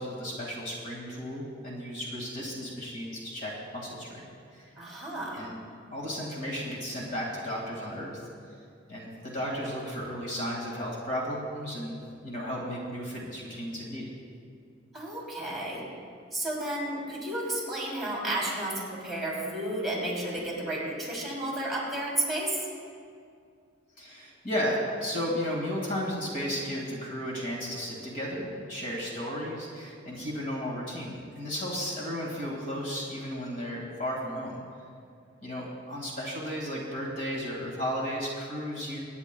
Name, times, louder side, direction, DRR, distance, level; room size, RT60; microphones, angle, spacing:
voice 1, 0.0-4.3 4.5-4.7 5.3-5.5 5.9-8.2 8.9-12.0 12.2-14.1 24.0-34.6 35.4-39.0, equal, 45° left, -3 dB, 2.1 m, -34 dB
voice 2, 4.8-5.5 14.9-15.8 16.3-22.6, right 1 dB, ahead, -5 dB, 2.9 m, -32 dB
24.5 x 9.7 x 2.3 m, 2.4 s
head